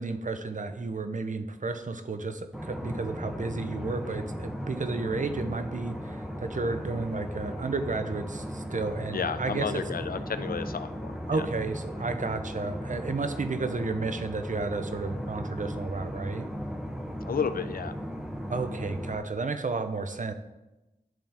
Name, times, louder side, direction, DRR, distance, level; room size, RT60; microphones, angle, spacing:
voice 1, 0.0-9.8 11.3-16.5 18.5-20.3, right 3 dB, 50° right, 8 dB, 0.6 m, -32 dB
sound 1, 2.5-19.2, equal, 5° right, 1.0 m, -37 dB
voice 2, 9.1-11.5 17.2-17.9, left 6 dB, 65° left, 12 dB, 0.4 m, -32 dB
10.5 x 3.5 x 3.5 m, 1.0 s
cardioid pair, 45°, 16 cm